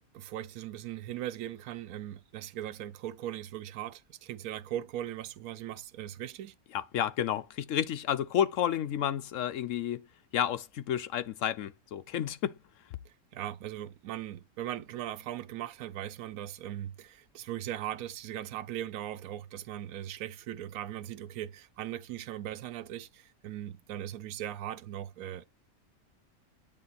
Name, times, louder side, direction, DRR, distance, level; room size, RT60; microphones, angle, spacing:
voice 1, 0.1-6.5 13.1-25.4, right 12 dB, 75° right, 1.1 m, -39 dB
voice 2, 6.7-10.0 10.3-12.6, left 10 dB, 70° left, 0.9 m, -31 dB
8.8 x 3.6 x 4.1 m
omnidirectional pair, 1.5 m